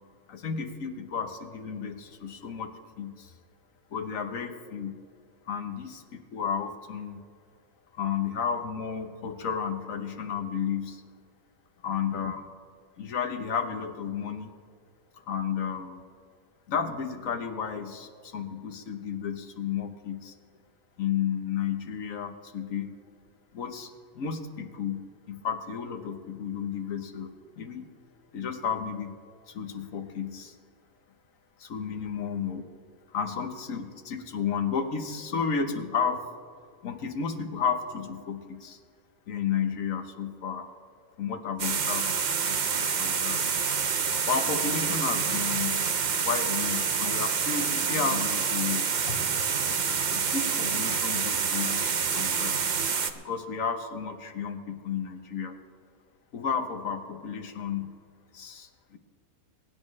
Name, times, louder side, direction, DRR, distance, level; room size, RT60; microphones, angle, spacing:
voice 1, 0.3-3.3 3.9-5.0 5.5-7.2 7.9-11.0 11.8-12.4 13.0-14.5 15.3-16.0 16.7-20.3 21.0-22.9 23.5-27.9 28.3-29.2 29.5-30.5 31.6-32.6 33.1-36.2 36.8-38.8 39.3-40.7 41.2-42.1 43.0-43.5 44.2-45.8 46.2-49.2 49.7-49.8 50.1-52.7 53.1-55.6 56.3-57.9 58.3-59.0, left 7 dB, 60° left, 6 dB, 1.4 m, -32 dB
sound 1, 41.6-53.1, right 6 dB, 50° right, 0.5 m, -27 dB
24.0 x 10.5 x 3.2 m, 2.1 s
omnidirectional pair, 1.6 m